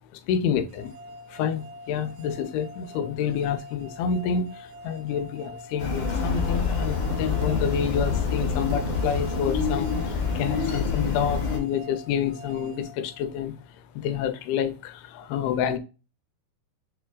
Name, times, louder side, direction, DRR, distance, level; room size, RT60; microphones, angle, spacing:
voice 1, 0.1-0.9 1.3-13.6 13.9-15.8, left 7 dB, 85° left, 2.6 m, -28 dB
sound 1, 0.7-13.7, equal, 80° right, 1.9 m, -45 dB
sound 2, 5.8-11.6, left 5 dB, 55° left, 2.2 m, -27 dB
sound 3, 7.0-10.4, left 3 dB, 60° right, 1.5 m, -32 dB
6.8 x 3.3 x 2.3 m
omnidirectional pair, 4.3 m